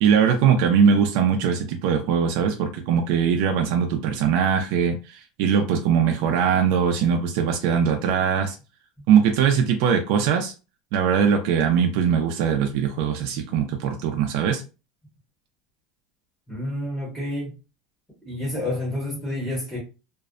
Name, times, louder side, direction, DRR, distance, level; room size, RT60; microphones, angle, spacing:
voice 1, 0.0-8.6 9.1-10.5 10.9-14.6, right 7 dB, 55° right, 0.4 m, -21 dB
voice 2, 16.5-17.5 18.2-19.8, left 1 dB, ahead, 0.7 m, -29 dB
2.5 x 2.0 x 2.5 m
supercardioid pair, 170°, 0 cm